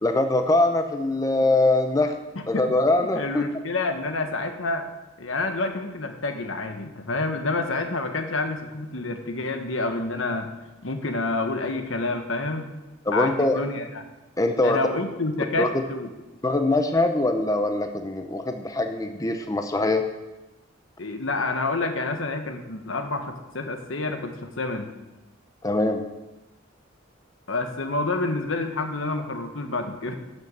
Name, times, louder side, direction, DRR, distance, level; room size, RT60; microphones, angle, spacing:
voice 1, 0.0-2.1 2.5-3.4 13.1-13.6 14.4-14.8 15.6-15.7 16.4-20.0 25.6-26.0, left 2 dB, 20° left, 6 dB, 0.7 m, -22 dB
voice 2, 2.3-2.7 3.0-4.9 5.2-10.5 10.8-12.7 13.1-14.0 14.6-16.1 21.0-24.9 27.5-30.2, left 2 dB, 75° left, 6 dB, 1.3 m, -28 dB
11.5 x 6.7 x 7.5 m, 1.0 s
head